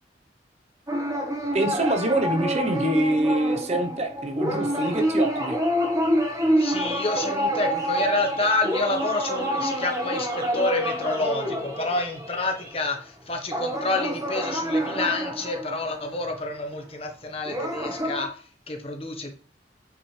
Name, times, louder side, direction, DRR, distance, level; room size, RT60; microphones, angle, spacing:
sound 1, 0.9-12.7 13.5-16.5 17.4-18.3, equal, 20° right, 1.3 m, -27 dB
voice 1, 1.5-5.6, right 1 dB, 35° right, 5 dB, 1.0 m, -25 dB
voice 2, 6.6-19.3, left 2 dB, 30° left, 3 dB, 1.2 m, -28 dB
8.5 x 5.8 x 3.3 m, 0.43 s
head